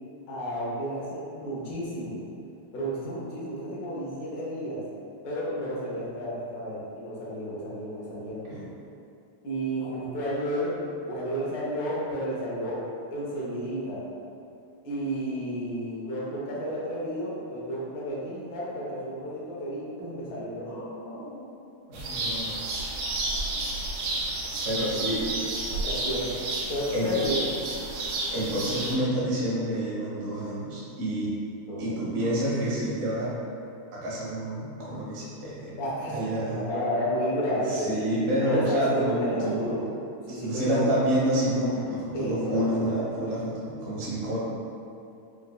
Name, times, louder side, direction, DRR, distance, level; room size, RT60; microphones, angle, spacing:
voice 1, 0.3-2.2 2.7-4.8 5.2-8.4 9.4-10.7 11.1-12.8 13.1-14.0 14.8-21.5 24.8-25.0 25.4-25.6 25.8-27.5 31.7-32.0 35.8-37.9 38.4-39.9 40.3-41.1 42.1-43.0, equal, 60° left, -6 dB, 1.0 m, -32 dB
voice 2, 21.9-22.6 24.6-25.3 26.9-27.1 28.3-31.3 31.8-33.3 33.9-35.7 36.0-36.6 37.7-39.7 40.3-44.4, equal, 55° right, -8 dB, 0.9 m, -28 dB
sound 1, 21.9-29.0, right 2 dB, 80° right, 1.4 m, -31 dB
4.1 x 2.4 x 2.3 m, 2.6 s
omnidirectional pair, 2.3 m